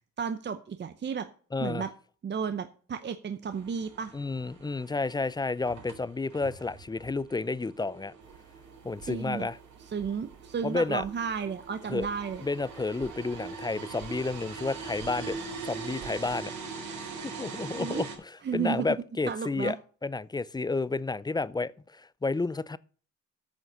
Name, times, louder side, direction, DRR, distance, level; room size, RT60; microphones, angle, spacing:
voice 1, 0.2-1.3 1.6-1.9 2.2-4.1 9.1-9.5 9.9-12.4 17.8-18.1 18.4-19.0 19.3-19.8, right 6 dB, 35° right, 0.8 m, -33 dB
voice 2, 1.5-1.9 4.1-8.1 8.8-9.6 10.6-11.0 11.9-12.1 12.4-15.4 15.6-16.5 17.2-19.8 20.0-22.8, left 3 dB, 15° left, 0.5 m, -31 dB
sound 1, 3.4-18.2, right 5 dB, 65° right, 3.6 m, -42 dB
sound 2, 8.2-16.4, right 11 dB, 85° right, 1.5 m, -54 dB
9.1 x 6.4 x 6.7 m
cardioid pair, 90°, 30 cm